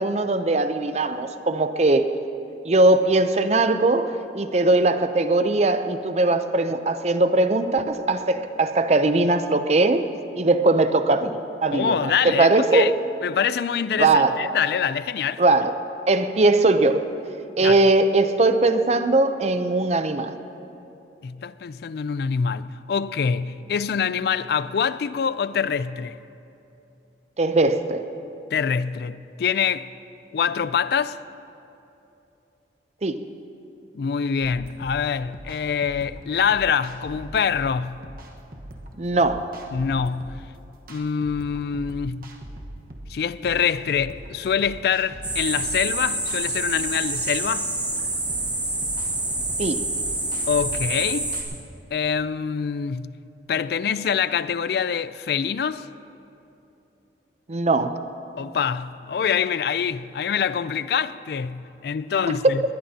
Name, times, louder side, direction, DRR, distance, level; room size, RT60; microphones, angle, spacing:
voice 1, 0.0-2.1 2.6-10.1 10.4-12.9 14.0-14.5 15.4-15.7 16.1-17.0 17.6-20.4 27.4-28.0 33.0-33.2 39.0-39.5 49.6-49.8 57.5-58.0 62.4-62.5, right 2 dB, 40° right, 0.6 m, -20 dB
voice 2, 11.7-12.9 13.2-15.4 17.6-17.8 21.2-26.2 28.5-29.9 30.3-31.2 33.9-38.0 39.7-40.4 40.9-42.4 43.1-47.7 50.5-51.3 51.9-53.2 53.5-55.9 58.4-62.6, left 7 dB, 60° left, 0.3 m, -25 dB
sound 1, 34.4-51.6, right 1 dB, 55° right, 1.3 m, -42 dB
sound 2, 45.2-51.4, right 2 dB, 10° right, 1.8 m, -27 dB
20.5 x 20.0 x 2.8 m
head